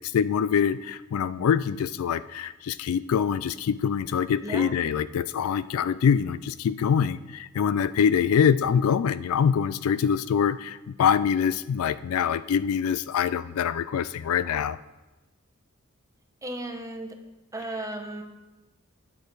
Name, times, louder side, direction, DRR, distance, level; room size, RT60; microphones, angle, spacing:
voice 1, 0.1-14.8, left 7 dB, 75° left, 15 dB, 0.3 m, -24 dB
voice 2, 16.4-17.2 17.5-18.2, right 1 dB, 15° right, 4 dB, 1.0 m, -35 dB
9.8 x 6.7 x 4.7 m, 1.1 s
head